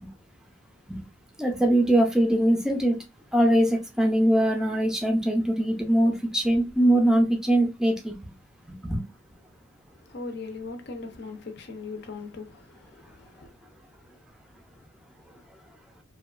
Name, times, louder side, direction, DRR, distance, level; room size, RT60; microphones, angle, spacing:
voice 1, 1.4-3.0 3.3-8.3 8.7-9.0, right 1 dB, 5° right, 0.4 m, -22 dB
voice 2, 9.9-13.5, left 3 dB, 50° left, 0.5 m, -39 dB
2.8 x 2.2 x 2.3 m
head